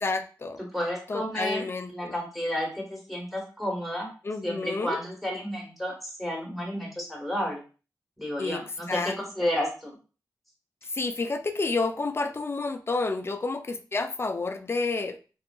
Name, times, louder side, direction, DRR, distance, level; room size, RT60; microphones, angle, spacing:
voice 1, 0.0-0.6 1.1-2.2 4.2-5.0 8.4-8.6 8.9-9.1 10.8-15.2, left 3 dB, 35° left, 7 dB, 0.3 m, -30 dB
voice 2, 0.7-1.7 1.9-4.1 4.4-7.6 8.2-10.0, equal, ahead, -2 dB, 1.2 m, -31 dB
2.7 x 2.3 x 2.2 m, 0.36 s
cardioid pair, 55°, 7 cm